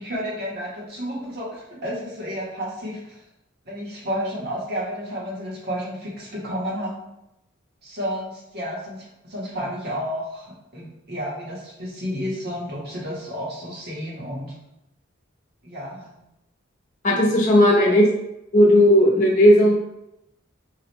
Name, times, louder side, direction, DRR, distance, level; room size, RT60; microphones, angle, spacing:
voice 1, 0.0-3.2 3.6-7.0 7.8-14.5 15.6-16.2 17.7-17.9, equal, 50° right, -4 dB, 1.2 m, -31 dB
voice 2, 17.0-18.0 18.5-19.8, equal, 40° left, -2 dB, 0.9 m, -15 dB
4.8 x 2.4 x 3.0 m, 0.86 s
head